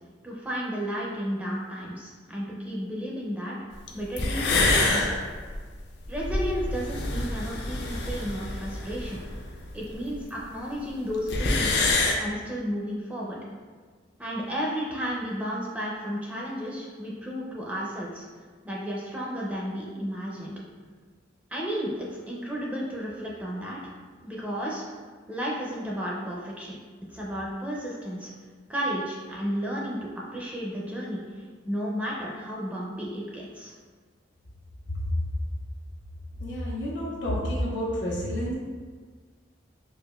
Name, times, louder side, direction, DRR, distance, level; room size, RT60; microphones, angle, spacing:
voice 1, 0.2-3.6 3.9-5.1 6.1-9.2 9.7-11.8 12.2-13.4 14.2-18.2 18.6-20.5 21.5-23.9 24.2-24.8 25.3-26.8 27.1-28.3 28.7-31.2 31.7-33.7, equal, 10° right, -4 dB, 0.4 m, -33 dB
sound 1, 3.9-4.0 4.2-10.2 10.4-10.5 10.7-10.8 11.1-12.1, left 2 dB, 60° left, 0.4 m, -26 dB
voice 2, 36.4-38.5, equal, 80° left, -5 dB, 1.0 m, -29 dB
4.6 x 2.5 x 2.3 m, 1.5 s
head